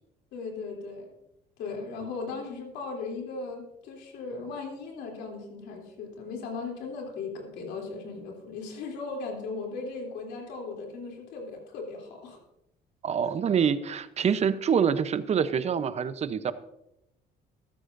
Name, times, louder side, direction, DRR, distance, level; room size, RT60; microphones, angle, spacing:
voice 1, 0.3-1.2 1.6-12.4, left 4 dB, 85° left, 1 dB, 3.2 m, -37 dB
voice 2, 13.0-16.5, right 7 dB, 40° right, 13 dB, 0.8 m, -26 dB
14.0 x 13.0 x 2.6 m, 0.86 s
cardioid pair, 110°, 17 cm